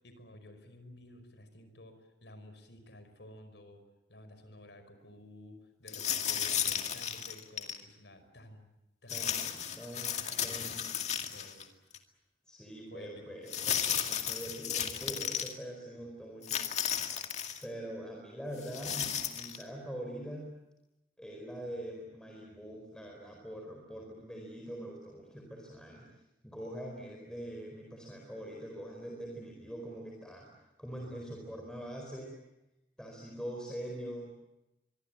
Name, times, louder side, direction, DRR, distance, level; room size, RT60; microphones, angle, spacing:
voice 1, 0.0-3.8 4.1-8.7 9.0-9.4 9.9-10.6 10.8-11.7 12.9-13.4, left 1 dB, 90° left, 9 dB, 5.3 m, -53 dB
sound 1, 5.9-7.8 9.1-11.6 11.9-12.0 13.5-15.5 16.4-17.6 18.6-19.6, left 8 dB, 40° left, 2.1 m, -34 dB
voice 2, 9.1-10.9 12.5-16.6 17.6-20.5 21.2-26.1 26.4-30.5 30.8-32.3 33.0-34.3, right 1 dB, 5° left, 0 dB, 4.6 m, -43 dB
24.5 x 24.0 x 8.9 m, 0.96 s
head